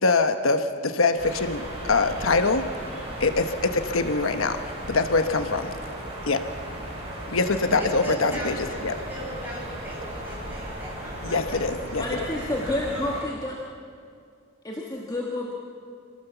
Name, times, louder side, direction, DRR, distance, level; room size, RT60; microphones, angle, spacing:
voice 1, 0.0-2.6 3.2-4.6 4.9-5.7 6.3-6.4 7.3-8.5 8.8-9.0 11.2-12.0, left 3 dB, 85° left, 8 dB, 1.1 m, -23 dB
sound 1, 1.2-13.2, right 1 dB, 30° right, 6.9 m, -36 dB
voice 2, 7.7-8.8 9.1-13.3, equal, 10° right, -4 dB, 6.7 m, -39 dB
voice 3, 12.0-13.6 14.6-15.5, left 1 dB, 20° left, -3 dB, 1.9 m, -29 dB
27.0 x 18.0 x 7.1 m, 2.3 s
head